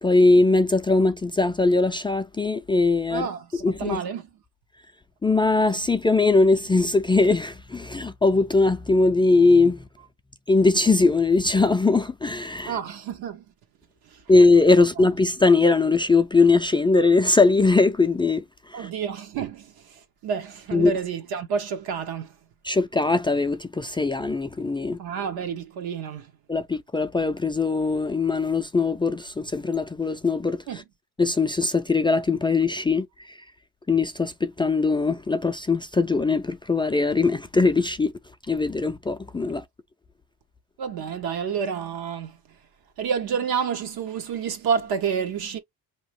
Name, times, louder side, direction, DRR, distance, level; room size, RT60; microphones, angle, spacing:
voice 1, 0.0-3.3 3.6-4.0 5.2-9.8 10.5-12.8 14.3-18.9 20.7-20.9 22.6-25.0 26.5-30.6 31.2-33.4 33.9-38.1 38.5-39.6, left 3 dB, 15° left, 0.3 m, -21 dB
voice 2, 3.1-4.3 12.7-13.5 14.1-14.2 15.0-15.1 18.7-22.3 25.0-26.3 30.7-30.8 40.8-42.4 43.0-45.6, right 7 dB, 75° right, 1.2 m, -29 dB
5.0 x 3.0 x 3.0 m
cardioid pair, 110°, 38 cm